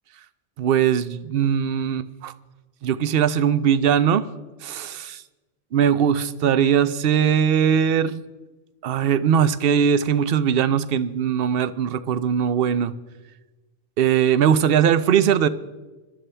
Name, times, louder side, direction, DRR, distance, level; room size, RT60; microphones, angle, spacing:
voice 1, 0.6-2.3 2.8-4.3 4.6-5.2 5.7-8.2 8.8-12.9 14.0-15.5, right 8 dB, 65° right, 14 dB, 0.8 m, -20 dB
21.0 x 12.5 x 3.3 m, 1.2 s
omnidirectional pair, 1.1 m